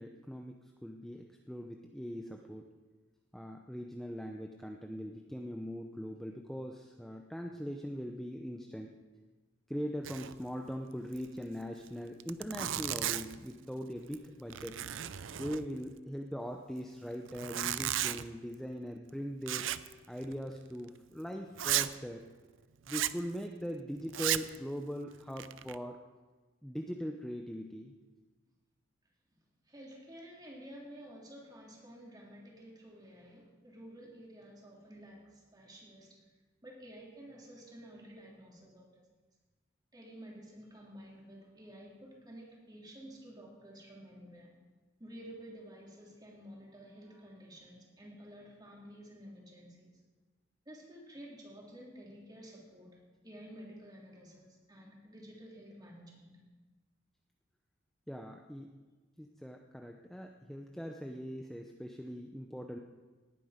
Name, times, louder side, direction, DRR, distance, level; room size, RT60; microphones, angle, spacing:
voice 1, 0.0-2.7 3.3-9.0 9.7-14.8 15.4-19.7 20.1-22.2 22.9-26.0 26.6-27.9 58.1-58.7 59.2-62.8, equal, ahead, 2 dB, 0.6 m, -41 dB
Zipper (clothing), 10.0-10.4 10.7-10.8 11.1-11.3 11.9-12.0 12.2-13.5 14.0-14.3 14.5-15.9 17.3-18.3 19.5-19.9 20.2-20.4 20.9-21.0 21.6-21.9 22.9-23.2 24.1-24.6 25.1-25.8, right 12 dB, 70° right, 0.5 m, -35 dB
voice 2, 29.6-36.2 36.6-39.2 39.9-44.5 45.0-50.0 50.6-53.0 53.2-56.4, equal, 20° right, -3 dB, 3.4 m, -51 dB
19.0 x 9.7 x 5.1 m, 1.3 s
head